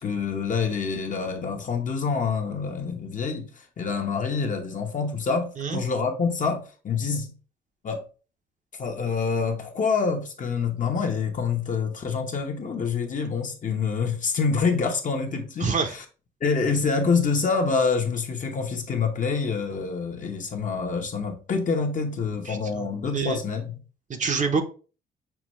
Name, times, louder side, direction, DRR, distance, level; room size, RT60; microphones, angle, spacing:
voice 1, 0.0-7.3 7.8-8.0 8.8-16.0 16.4-23.7, left 5 dB, 40° left, 0.9 m, -26 dB
voice 2, 15.6-15.9 22.5-22.9 23.1-23.4 24.1-24.6, right 5 dB, 40° right, 0.7 m, -26 dB
5.8 x 2.2 x 3.0 m
cardioid pair, 90°, 20 cm